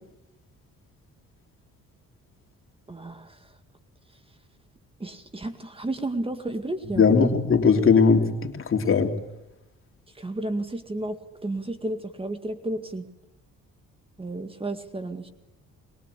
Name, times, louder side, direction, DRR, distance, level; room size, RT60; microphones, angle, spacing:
voice 1, 2.9-3.3 5.0-7.3 10.2-11.2 11.4-13.0 14.2-15.3, right 2 dB, 20° right, 8 dB, 2.0 m, -32 dB
voice 2, 7.0-9.1, left 5 dB, 45° left, 5 dB, 3.2 m, -19 dB
22.0 x 21.5 x 8.4 m, 0.93 s
cardioid pair, 90°, 30 cm